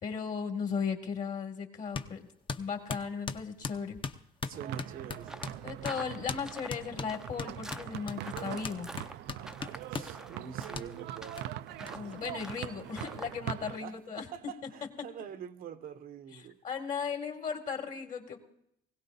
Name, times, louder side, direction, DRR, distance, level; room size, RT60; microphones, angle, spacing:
voice 1, 0.0-2.3 2.5-4.0 5.6-8.9 11.9-14.3 14.6-14.7 16.3-18.4, left 6 dB, 50° left, 2.2 m, -36 dB
sound 1, 1.9-2.1 2.5-5.6 5.8-6.0 6.3-6.4 6.7-10.2 10.7-10.9 11.4-11.5 11.9-12.0 12.2-12.3 12.6-13.3, left 5 dB, 30° left, 0.7 m, -39 dB
voice 2, 4.5-5.5 9.9-11.5 13.8-16.6, right 8 dB, 60° right, 0.8 m, -45 dB
sound 2, 4.5-13.8, right 13 dB, 85° right, 0.4 m, -42 dB
sound 3, 5.2-13.4, right 1 dB, 5° right, 0.5 m, -48 dB
20.5 x 17.0 x 2.7 m
cardioid pair, 110°, 17 cm